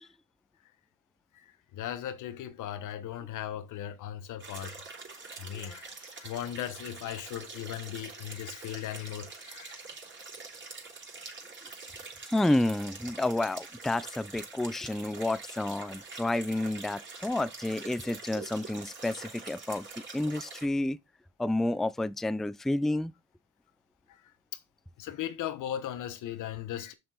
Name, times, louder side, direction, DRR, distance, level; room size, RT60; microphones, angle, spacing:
voice 1, 1.7-4.8 5.1-9.8 24.1-24.2 25.0-26.9, left 11 dB, 85° left, 1.2 m, -38 dB
sound 1, 4.4-20.7, right 4 dB, 40° right, 3.5 m, -45 dB
voice 2, 12.3-19.9 20.1-21.0 21.4-23.1, left 1 dB, ahead, 0.4 m, -30 dB
6.9 x 6.8 x 4.0 m
cardioid pair, 90°, 30 cm